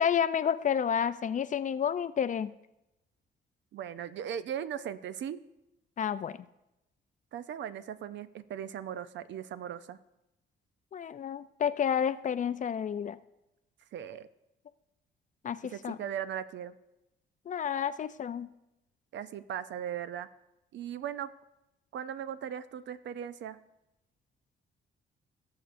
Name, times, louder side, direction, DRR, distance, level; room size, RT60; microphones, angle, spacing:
voice 1, 0.0-2.5 6.0-6.4 10.9-13.2 15.4-16.0 17.5-18.5, left 8 dB, 40° left, 14 dB, 0.4 m, -30 dB
voice 2, 3.7-5.4 7.3-10.0 13.9-14.3 15.6-16.8 19.1-20.3 20.7-21.3 21.9-23.6, right 9 dB, 65° right, 13 dB, 0.5 m, -38 dB
17.5 x 6.7 x 2.6 m, 0.91 s
cardioid pair, 90°, 20 cm